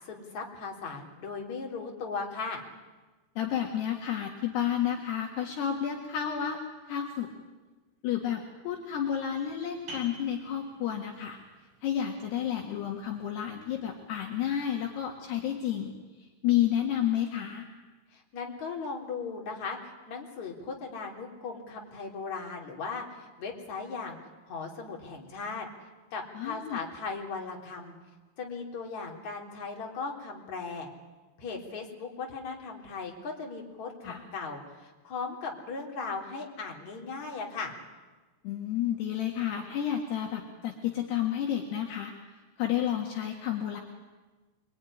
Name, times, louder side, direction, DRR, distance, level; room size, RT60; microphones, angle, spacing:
voice 1, 0.0-2.6 18.1-24.2 24.4-25.7 26.1-28.0 28.4-30.9 31.4-37.8, left 4 dB, 40° left, 0 dB, 4.5 m, -38 dB
voice 2, 3.4-6.6 6.9-7.3 8.0-11.4 11.8-15.9 16.2-17.7 26.4-26.8 34.0-34.2 38.4-42.1 42.6-43.8, left 10 dB, 70° left, 1 dB, 3.7 m, -31 dB
sound 1, 9.9-15.2, right 1 dB, 50° right, 8.2 m, -51 dB
27.5 x 22.0 x 10.0 m, 1.3 s
omnidirectional pair, 5.3 m